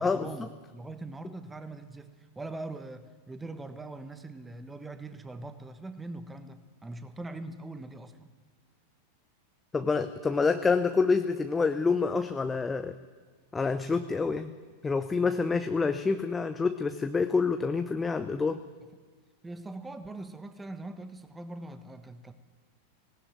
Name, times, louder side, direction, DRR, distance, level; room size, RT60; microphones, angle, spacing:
voice 1, 0.0-8.3 19.4-22.3, right 2 dB, 10° right, 10 dB, 1.3 m, -42 dB
voice 2, 9.7-12.9 13.5-14.5 14.8-18.6, left 4 dB, 15° left, 9 dB, 0.8 m, -27 dB
19.0 x 17.5 x 9.0 m, 1.5 s
figure-of-eight pair, 90°, 0 cm